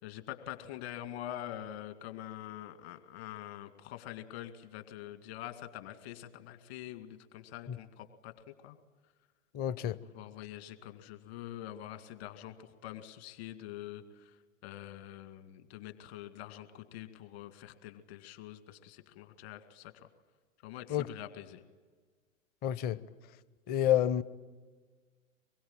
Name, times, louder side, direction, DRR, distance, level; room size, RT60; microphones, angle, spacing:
voice 1, 0.0-8.8 10.0-14.3 14.6-19.9 20.6-21.6, left 12 dB, 50° left, 8 dB, 2.2 m, -45 dB
voice 2, 9.5-10.0 20.9-21.1 22.6-23.0 23.7-24.2, left 11 dB, 25° left, 18 dB, 0.7 m, -29 dB
25.0 x 22.0 x 8.9 m, 1.4 s
figure-of-eight pair, 100°, 40 cm